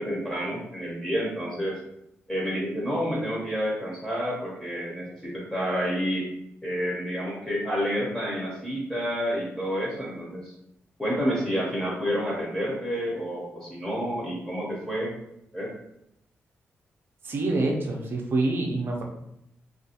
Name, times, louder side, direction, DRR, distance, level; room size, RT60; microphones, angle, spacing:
voice 1, 0.0-1.8 2.3-6.3 6.6-10.5 11.0-15.1 15.5-15.7, equal, 5° left, -5 dB, 0.6 m, -29 dB
voice 2, 17.2-19.0, right 2 dB, 50° right, 1 dB, 0.5 m, -26 dB
2.4 x 2.3 x 2.8 m, 0.80 s
wide cardioid pair, 120°, 5 cm